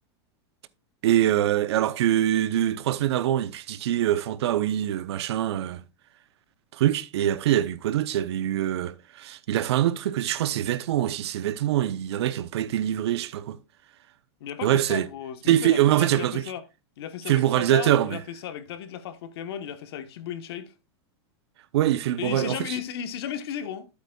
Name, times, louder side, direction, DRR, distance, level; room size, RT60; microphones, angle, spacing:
voice 1, 1.0-5.8 6.7-13.6 14.6-15.1 15.5-16.4 17.3-18.2 21.7-22.6, right 12 dB, 70° right, 0.7 m, -24 dB
voice 2, 14.4-16.6 17.0-20.7 22.2-23.9, left 9 dB, 65° left, 1.1 m, -35 dB
11.0 x 8.2 x 2.3 m
supercardioid pair, 175°, 14 cm